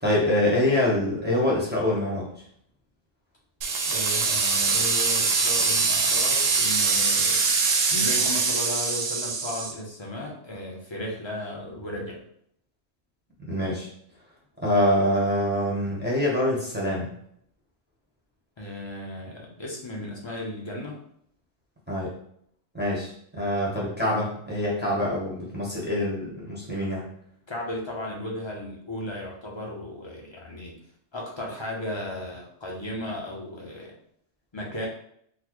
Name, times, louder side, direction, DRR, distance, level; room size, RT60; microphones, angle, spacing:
voice 1, 0.0-2.3 13.5-13.9 14.6-17.1 21.9-22.1 22.7-27.0, left 1 dB, 10° right, -6 dB, 0.6 m, -25 dB
sound 1, 3.6-9.7, right 4 dB, 75° right, 0.9 m, -23 dB
voice 2, 3.8-7.4 7.9-12.2 18.6-21.0 27.5-30.8 31.1-33.9 34.5-34.9, left 1 dB, 30° left, -2 dB, 0.5 m, -35 dB
3.9 x 2.1 x 3.0 m, 0.68 s
omnidirectional pair, 1.4 m